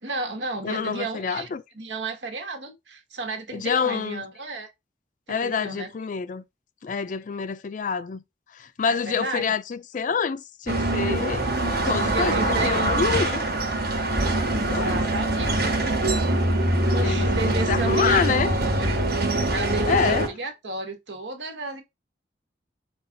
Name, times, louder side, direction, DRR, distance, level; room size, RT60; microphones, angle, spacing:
voice 1, 0.0-1.5 1.7-4.7 5.3-5.9 8.9-9.5 12.0-12.9 14.5-15.7 16.9-19.0 19.5-21.8, right 3 dB, 80° right, 1.2 m, -33 dB
voice 2, 0.6-1.6 3.5-4.2 5.3-6.4 6.8-8.2 8.5-13.4 14.5-15.0 17.0-17.3 17.7-18.5 19.9-20.3, left 6 dB, 45° left, 0.4 m, -27 dB
sound 1, 10.7-20.3, right 1 dB, 60° right, 1.2 m, -23 dB
5.4 x 2.4 x 3.9 m
head